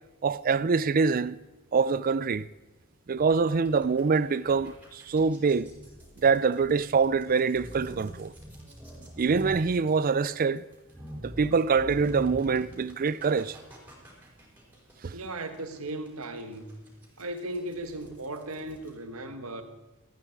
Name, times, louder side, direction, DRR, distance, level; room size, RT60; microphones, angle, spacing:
voice 1, 0.2-1.4 1.7-2.5 3.1-5.7 6.2-8.3 9.2-10.6 11.2-13.6 15.0-15.1, right 5 dB, 40° right, 0.4 m, -25 dB
sound 1, 3.2-18.9, equal, 10° right, 4.8 m, -45 dB
voice 2, 15.1-16.7 17.2-19.6, right 1 dB, 80° right, 1.7 m, -36 dB
19.0 x 14.5 x 4.7 m
head